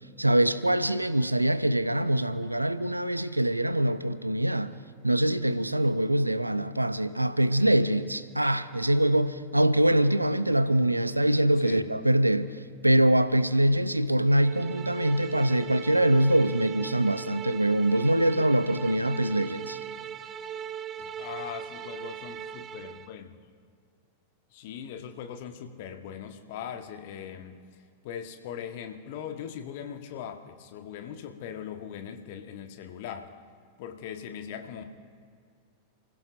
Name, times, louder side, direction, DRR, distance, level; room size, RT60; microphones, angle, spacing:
voice 1, 0.2-4.7 5.0-19.8, right 1 dB, 85° right, 0.6 m, -24 dB
sound 1, 14.3-23.1, right 8 dB, 30° right, 0.5 m, -40 dB
voice 2, 21.0-23.4 24.5-27.6 28.0-33.3 33.8-34.8, left 8 dB, 50° left, 1.2 m, -40 dB
29.5 x 16.0 x 2.6 m
figure-of-eight pair, 90°, 0 cm